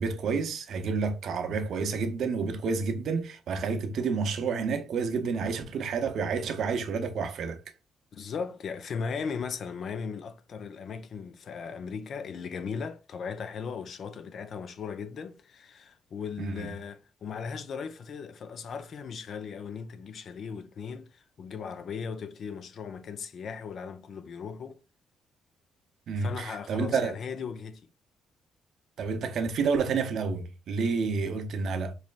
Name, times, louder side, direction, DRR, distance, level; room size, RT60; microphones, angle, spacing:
voice 1, 0.0-7.6 16.4-16.7 26.1-27.2 29.0-31.9, right 5 dB, 65° right, 0.7 m, -29 dB
voice 2, 8.1-24.8 26.2-27.8, left 6 dB, 60° left, 0.5 m, -37 dB
4.1 x 3.2 x 2.4 m
cardioid pair, 90°, 0 cm